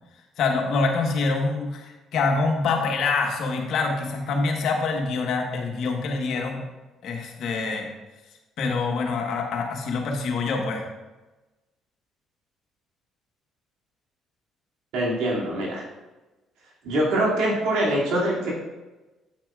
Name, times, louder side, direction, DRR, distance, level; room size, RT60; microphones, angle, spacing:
voice 1, 0.4-6.7 7.0-7.9 8.6-10.9, left 4 dB, 70° left, 2 dB, 1.4 m, -25 dB
voice 2, 14.9-15.8 16.8-18.5, right 1 dB, 75° right, -4 dB, 2.6 m, -24 dB
8.9 x 8.4 x 2.5 m, 1.1 s
supercardioid pair, 65°, 0 cm